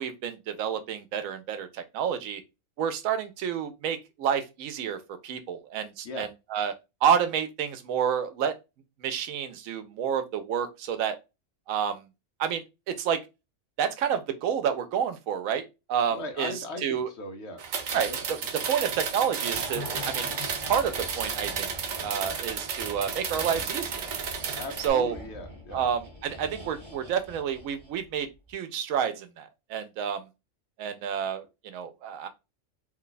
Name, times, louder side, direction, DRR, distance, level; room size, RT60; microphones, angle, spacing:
voice 1, 0.0-2.4 2.8-6.7 7.0-8.5 9.0-11.2 11.7-12.1 12.4-13.2 13.8-15.6 15.9-16.5 16.8-17.1 17.9-18.1 18.7-20.3 20.7-21.7 22.0-24.1 24.8-25.1 25.7-30.2 30.8-32.3, right 8 dB, 90° right, 9 dB, 1.0 m, -29 dB
voice 2, 16.1-17.6 18.1-18.7 24.5-25.8, left 2 dB, 60° left, 5 dB, 1.0 m, -39 dB
sound 1, 17.6-24.9, right 6 dB, 60° right, 0.5 m, -33 dB
sound 2, 19.5-28.1 28.3-28.5, left 1 dB, 25° right, 0.7 m, -43 dB
3.1 x 2.2 x 3.8 m, 0.25 s
omnidirectional pair, 1.4 m